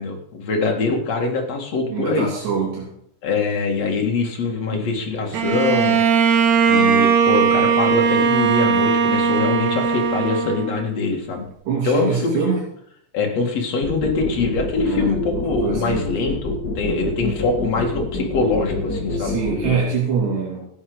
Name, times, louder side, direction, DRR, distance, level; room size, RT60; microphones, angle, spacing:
voice 1, 0.0-2.3 3.2-6.0 6.7-11.5 11.8-12.5 13.1-19.3, left 3 dB, 45° left, 1 dB, 2.7 m, -23 dB
voice 2, 1.8-2.9 4.7-4.9 11.7-12.7 14.2-14.4 14.8-16.1 19.2-20.7, right 6 dB, 85° right, -5 dB, 5.5 m, -24 dB
Bowed string instrument, 5.3-11.1, right 6 dB, 70° right, 1.8 m, -18 dB
sound 1, 13.8-19.7, left 2 dB, 25° left, 2.6 m, -26 dB
14.5 x 9.5 x 5.1 m, 0.69 s
omnidirectional pair, 4.8 m